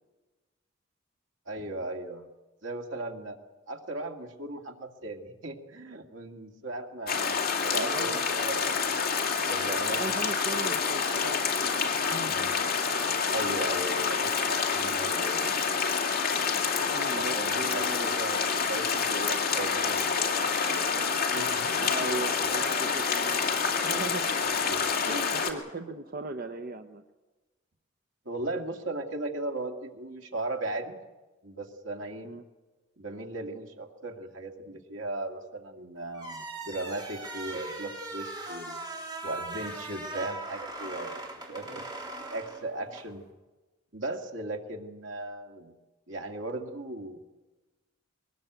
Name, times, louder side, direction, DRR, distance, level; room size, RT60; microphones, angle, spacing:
voice 1, 1.5-2.3 2.6-3.4 3.7-8.8 9.5-10.2 10.5-10.8 12.0-12.5 13.3-15.4 17.1-21.0 21.3-22.2 22.4-22.8 24.7-24.8 25.1-25.4 28.3-30.9 31.4-32.3 33.0-38.8 39.2-41.8 42.3-43.2 43.9-45.7 46.1-47.2, right 2 dB, 80° right, 2 dB, 2.3 m, -37 dB
sound 1, 7.1-25.5, left 5 dB, 50° left, 2.5 m, -28 dB
voice 2, 7.7-8.3 9.9-12.0 16.8-18.2 21.8-24.3 25.3-27.0 32.2-32.4 41.6-41.9, right 2 dB, 50° right, 6 dB, 0.9 m, -38 dB
sound 2, 36.1-43.1, right 2 dB, 20° right, 3.7 m, -39 dB
22.5 x 19.0 x 8.1 m, 1.2 s
head